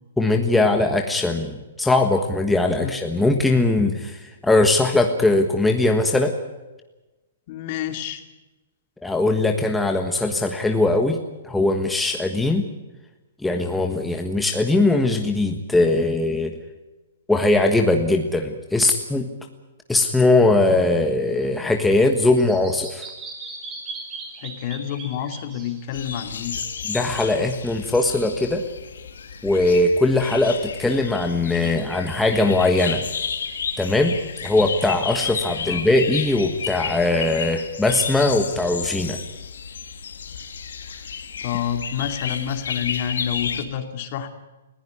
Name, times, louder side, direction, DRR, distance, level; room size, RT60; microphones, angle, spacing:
voice 1, 0.2-6.3 9.0-11.2 11.4-12.6 13.4-16.5 17.3-19.3 19.9-23.0 26.9-28.6 29.4-33.0 33.8-34.2 34.4-39.2, left 2 dB, 5° left, 3 dB, 1.4 m, -20 dB
voice 2, 7.5-8.2 24.4-26.6 35.7-35.9 40.9-41.0 41.4-44.3, left 9 dB, 45° left, 7 dB, 2.5 m, -28 dB
Bird vocalization bird call bird song, 21.3-27.2, right 3 dB, 20° right, 5.2 m, -39 dB
sound 1, 25.9-43.6, left 6 dB, 80° left, 2.3 m, -32 dB
20.5 x 16.0 x 9.7 m, 1.1 s
hypercardioid pair, 150°, 0 cm